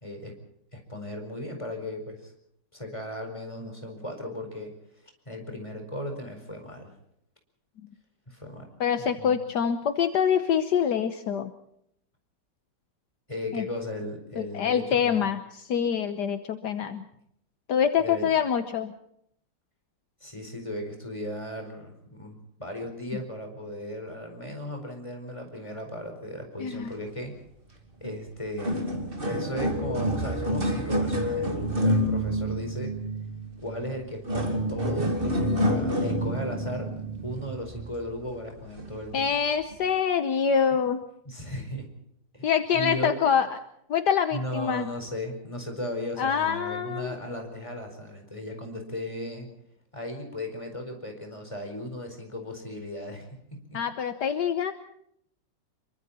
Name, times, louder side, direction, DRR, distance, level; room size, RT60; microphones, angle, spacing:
voice 1, 0.0-0.3 0.7-2.3 2.7-4.7 5.2-6.9 8.3-8.7 9.0-9.4 13.3-15.3 18.0-18.3 20.2-27.4 28.0-28.8 29.3-32.9 33.6-36.9 37.2-39.4 41.2-41.9 42.3-43.1 44.3-49.5 49.9-53.8, left 1 dB, 15° left, 3 dB, 4.8 m, -36 dB
voice 2, 8.8-11.5 13.5-13.6 14.4-17.0 17.7-18.9 26.6-26.9 39.1-41.0 42.4-43.6 43.9-44.9 46.2-47.1 53.7-54.7, left 7 dB, 70° left, 9 dB, 1.6 m, -25 dB
sound 1, 28.0-28.2 28.4-38.1 38.8-39.0 39.7-39.8, equal, 30° right, 2.6 m, -28 dB
26.5 x 23.5 x 4.3 m, 0.71 s
omnidirectional pair, 1.9 m